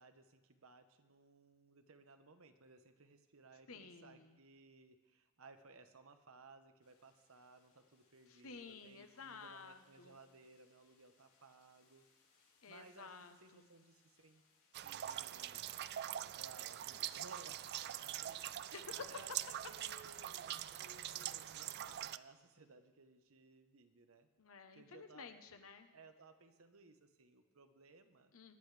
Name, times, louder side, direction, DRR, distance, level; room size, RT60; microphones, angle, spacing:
voice 1, 0.0-12.1 12.4-14.4 14.7-15.7 16.3-24.3 24.7-25.4 25.9-28.3, right 3 dB, 70° right, 8 dB, 1.0 m, -61 dB
voice 2, 3.7-4.3 8.3-10.2 12.6-13.7 18.7-18.9 24.4-25.9 28.3-28.6, left 5 dB, 70° left, 8 dB, 1.0 m, -54 dB
sound 1, 6.8-22.0, left 4 dB, 90° left, 4.7 m, -75 dB
sound 2, 14.7-22.2, right 12 dB, 50° right, 0.3 m, -44 dB
23.0 x 10.5 x 3.4 m, 1.3 s
head